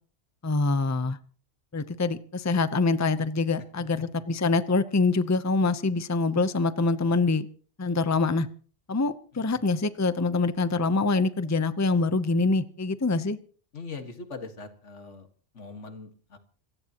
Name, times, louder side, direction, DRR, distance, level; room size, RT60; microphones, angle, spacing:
voice 1, 0.4-1.2 1.7-7.5 7.8-8.5 8.9-13.4, left 3 dB, 15° left, 0.7 m, -25 dB
voice 2, 9.3-9.7 13.7-15.3 15.5-16.4, left 4 dB, 80° left, 2.1 m, -41 dB
27.0 x 16.0 x 3.0 m
omnidirectional pair, 1.2 m